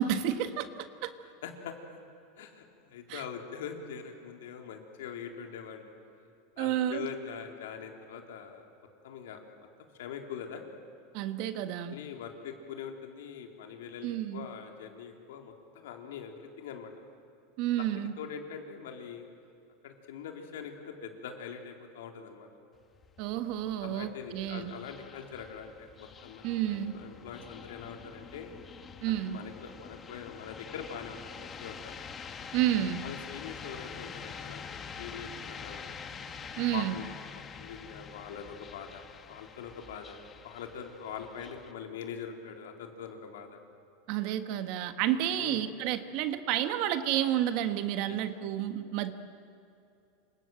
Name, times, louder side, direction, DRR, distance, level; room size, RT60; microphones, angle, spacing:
voice 1, 0.0-1.1 3.1-3.2 6.6-7.1 11.1-12.0 14.0-14.4 17.6-18.2 23.2-24.7 26.4-26.9 29.0-29.4 32.5-33.0 36.6-36.9 44.1-49.1, right 11 dB, 50° right, 9 dB, 1.6 m, -30 dB
voice 2, 1.3-2.0 2.4-5.9 6.6-8.6 9.0-9.4 9.8-10.6 11.9-16.9 17.8-19.3 19.8-22.5 23.8-28.5 29.3-31.9 33.0-35.8 36.7-39.0 39.3-40.2 40.4-43.6 45.4-45.6 48.1-48.2, left 7 dB, 85° left, 3 dB, 3.8 m, -43 dB
sound 1, 22.7-41.7, left 6 dB, 20° left, 1.6 m, -46 dB
28.0 x 26.5 x 7.9 m, 2.7 s
supercardioid pair, 155°, 0 cm